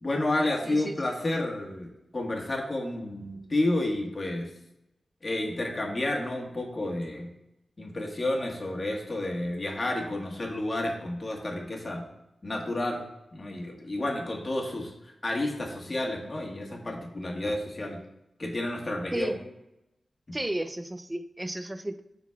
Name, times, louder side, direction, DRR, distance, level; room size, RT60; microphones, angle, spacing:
voice 1, 0.0-4.5 5.2-7.3 7.8-12.0 12.4-13.0 13.3-14.9 15.2-18.0 18.4-19.4, left 1 dB, 40° left, 0 dB, 1.5 m, -30 dB
voice 2, 20.3-22.0, right 1 dB, 15° right, 10 dB, 0.5 m, -33 dB
12.0 x 4.0 x 2.4 m, 0.86 s
cardioid pair, 70°, 0 cm